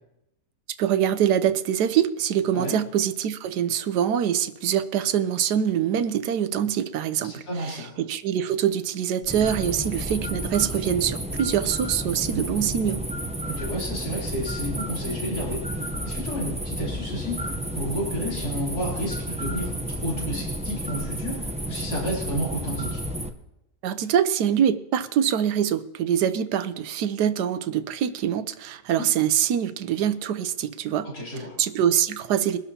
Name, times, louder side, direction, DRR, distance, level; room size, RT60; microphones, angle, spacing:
voice 1, 0.8-13.0 23.8-31.1 31.6-32.6, right 9 dB, 80° right, 13 dB, 1.3 m, -24 dB
voice 2, 7.2-7.9 12.3-12.4 13.5-23.0 31.0-31.5, equal, 70° left, -5 dB, 4.0 m, -32 dB
sound 1, 9.2-23.3, equal, 10° right, 0.4 m, -31 dB
22.5 x 12.5 x 2.9 m, 0.84 s
omnidirectional pair, 1.7 m